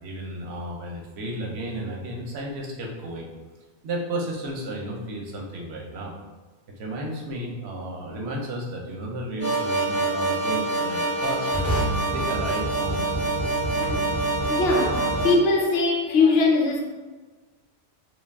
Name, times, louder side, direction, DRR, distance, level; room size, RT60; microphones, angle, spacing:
voice 1, 0.0-3.3 3.8-6.1 6.8-11.6 12.0-13.1, right 1 dB, 70° right, -1 dB, 0.8 m, -33 dB
sound 1, 9.4-15.3, right 2 dB, 25° left, 0.3 m, -25 dB
voice 2, 14.5-16.8, left 3 dB, 65° left, 1 dB, 0.7 m, -21 dB
2.2 x 2.2 x 3.3 m, 1.3 s
omnidirectional pair, 1.2 m